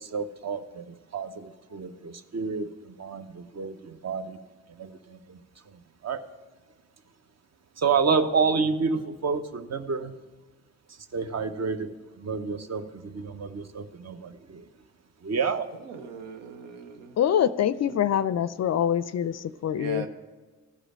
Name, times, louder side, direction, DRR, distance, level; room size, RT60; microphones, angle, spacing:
voice 1, 0.0-4.4 4.8-5.4 6.0-6.2 7.8-10.1 11.1-11.9 12.2-14.6 15.2-15.7, right 5 dB, 40° right, 10 dB, 0.8 m, -29 dB
voice 2, 15.8-17.2 17.9-18.0 19.8-20.1, right 5 dB, 90° right, 7 dB, 0.8 m, -39 dB
voice 3, 17.2-20.1, left 9 dB, 45° left, 16 dB, 0.4 m, -25 dB
13.0 x 4.9 x 7.6 m, 1.3 s
hypercardioid pair, 45°, 40 cm